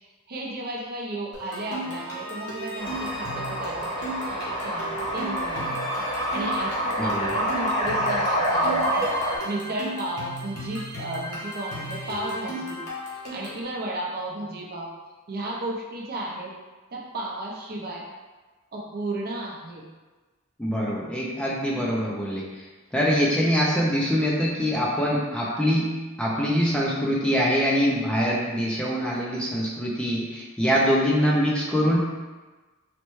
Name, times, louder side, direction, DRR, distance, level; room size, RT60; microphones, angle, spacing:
voice 1, 0.3-12.8 13.3-14.9 15.3-16.5 16.9-18.0 18.7-19.8, right 1 dB, 45° right, -2 dB, 0.6 m, -34 dB
sound 1, 1.3-13.6, equal, 75° left, 1.0 m, -36 dB
sound 2, 2.8-9.4, equal, 30° left, 1.3 m, -27 dB
voice 2, 7.0-7.3 20.6-22.7 22.9-32.0, equal, 5° left, -5 dB, 0.4 m, -24 dB
4.1 x 2.2 x 3.0 m, 1.2 s
head